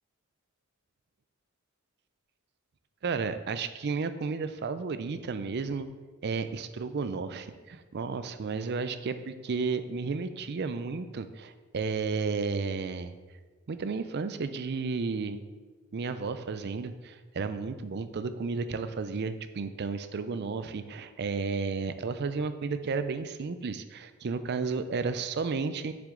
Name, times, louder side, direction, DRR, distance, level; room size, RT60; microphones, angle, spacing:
voice 1, 3.0-5.9 6.2-13.1 13.7-15.4 15.9-25.9, right 4 dB, 50° right, 11 dB, 0.4 m, -32 dB
6.9 x 6.3 x 3.8 m, 1.3 s
head